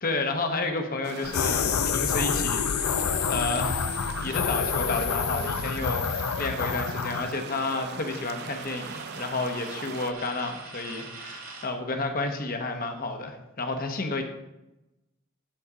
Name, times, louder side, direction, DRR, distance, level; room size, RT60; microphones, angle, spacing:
voice 1, 0.0-3.9 4.2-14.2, left 3 dB, 40° left, 5 dB, 1.0 m, -31 dB
sound 1, 1.0-10.1, right 6 dB, 45° right, 0.4 m, -40 dB
sound 2, 1.2-7.3, left 7 dB, 75° left, 0.5 m, -28 dB
sound 3, 1.4-5.5 5.8-11.8, right 3 dB, 75° right, 1.9 m, -46 dB
12.5 x 4.3 x 4.9 m, 0.96 s
head